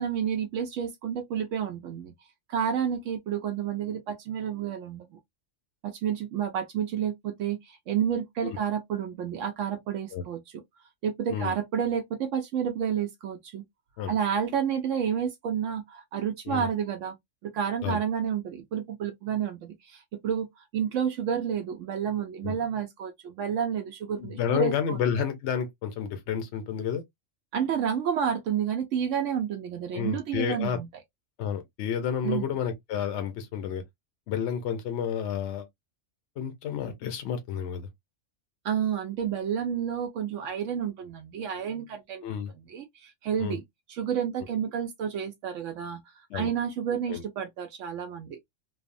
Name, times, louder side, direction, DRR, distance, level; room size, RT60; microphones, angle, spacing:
voice 1, 0.0-2.1 2.5-5.2 5.8-10.4 11.0-13.6 14.1-17.1 17.4-25.0 27.5-30.9 32.2-32.5 38.6-42.2 42.5-43.6 43.9-48.4, right 8 dB, 80° right, 0.9 m, -30 dB
voice 2, 24.2-27.0 29.9-30.8 31.4-33.8 34.3-35.7 36.4-37.9 42.2-42.5 43.4-43.6 46.3-46.5 47.1-47.2, left 8 dB, 70° left, 0.9 m, -30 dB
3.2 x 2.0 x 2.4 m
omnidirectional pair, 1.3 m